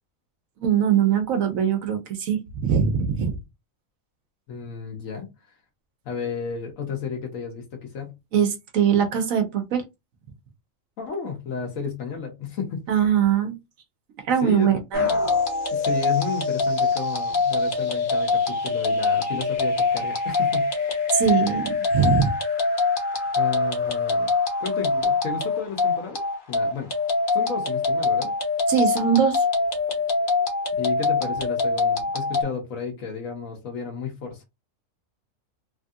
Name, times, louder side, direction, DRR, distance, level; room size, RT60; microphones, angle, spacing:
voice 1, 0.6-3.3 8.3-9.8 12.9-13.6 14.3-15.1 21.1-22.3 28.7-29.4, right 8 dB, 80° right, 1.1 m, -22 dB
voice 2, 4.5-5.3 6.0-8.2 11.0-12.8 14.4-14.7 15.7-20.9 23.3-24.3 24.6-26.2 26.5-26.9 27.3-28.3 30.8-34.4, left 5 dB, 75° left, 1.2 m, -32 dB
sound 1, 14.9-32.4, left 3 dB, 45° left, 0.9 m, -24 dB
3.2 x 2.7 x 2.3 m
omnidirectional pair, 1.4 m